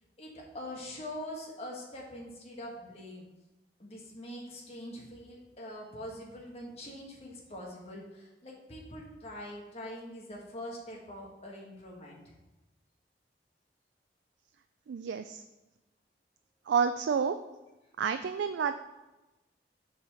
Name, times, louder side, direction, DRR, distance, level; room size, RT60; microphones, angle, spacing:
voice 1, 0.2-3.3 3.8-12.3, left 1 dB, 35° left, -2 dB, 1.4 m, -43 dB
voice 2, 14.9-15.4 16.7-17.4 18.0-18.7, right 6 dB, 90° right, 9 dB, 0.3 m, -29 dB
7.5 x 4.1 x 6.4 m, 1.1 s
head